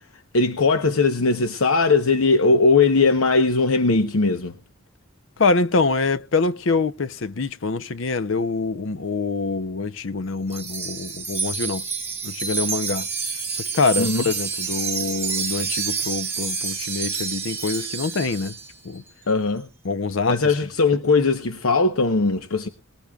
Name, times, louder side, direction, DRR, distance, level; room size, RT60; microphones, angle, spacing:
voice 1, 0.3-4.5 14.0-14.2 19.3-19.7 20.3-22.7, left 3 dB, 90° left, 0.9 m, -19 dB
voice 2, 5.4-11.8 12.2-13.1 13.5-18.5 18.8-19.0 19.8-20.5, left 4 dB, 65° left, 0.6 m, -25 dB
Wind chime, 10.5-18.7, right 5 dB, 10° right, 1.7 m, -28 dB
20.0 x 15.5 x 2.4 m
head